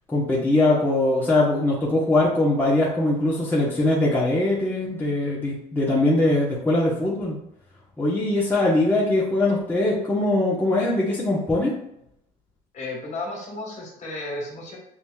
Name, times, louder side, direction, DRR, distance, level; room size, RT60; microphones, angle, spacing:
voice 1, 0.1-7.3 8.0-11.7, left 2 dB, 10° left, -6 dB, 1.2 m, -21 dB
voice 2, 12.7-14.8, left 2 dB, 45° left, -2 dB, 1.8 m, -33 dB
7.3 x 2.9 x 2.4 m, 0.75 s
cardioid pair, 110°, 17 cm